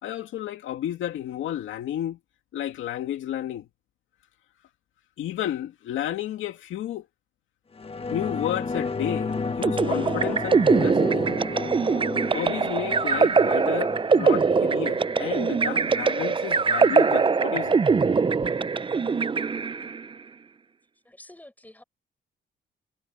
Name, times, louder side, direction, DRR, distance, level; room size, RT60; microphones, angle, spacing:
voice 1, 0.0-2.2 2.5-3.7 5.2-7.1 8.1-11.3 12.3-17.8, left 11 dB, 80° left, 2.3 m, -32 dB
sound 1, 7.8-16.8 17.1-17.2, left 4 dB, 30° left, 1.5 m, -33 dB
sound 2, 9.6-20.1, right 5 dB, 25° right, 0.7 m, -22 dB
voice 2, 21.0-21.8, left 1 dB, 10° left, 6.8 m, -48 dB
cardioid pair, 90°, 20 cm